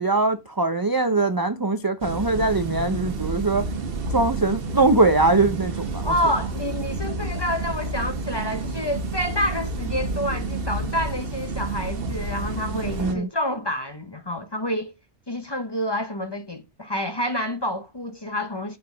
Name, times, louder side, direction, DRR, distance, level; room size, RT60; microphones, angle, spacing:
voice 1, 0.0-3.6 4.1-6.1 13.0-13.3, right 3 dB, 30° right, 0.4 m, -22 dB
sound 1, 2.0-13.1, right 3 dB, 55° right, 1.1 m, -30 dB
voice 2, 6.0-14.9 15.3-18.8, left 1 dB, 25° left, 0.7 m, -28 dB
6.7 x 5.4 x 3.9 m
omnidirectional pair, 1.2 m